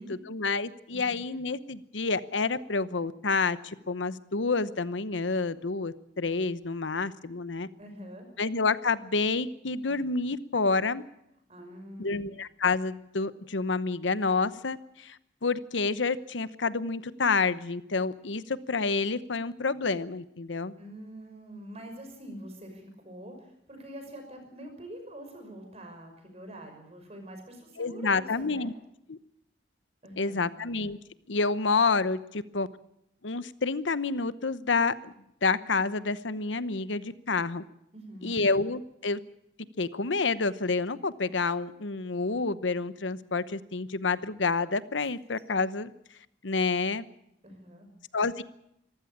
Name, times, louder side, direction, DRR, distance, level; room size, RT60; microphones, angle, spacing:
voice 1, 0.0-7.7 8.4-11.0 12.0-20.7 27.8-28.7 29.1-29.2 30.2-31.0 31.3-32.7 33.2-35.1 35.4-37.6 38.2-39.2 39.8-45.9 46.4-47.1 48.1-48.4, left 4 dB, 90° left, 15 dB, 1.0 m, -29 dB
voice 2, 7.8-8.3 11.5-12.2 20.8-28.7 30.0-30.5 37.9-38.4 47.4-47.9, right 1 dB, 35° right, 5 dB, 5.8 m, -45 dB
24.5 x 15.0 x 8.7 m, 0.80 s
head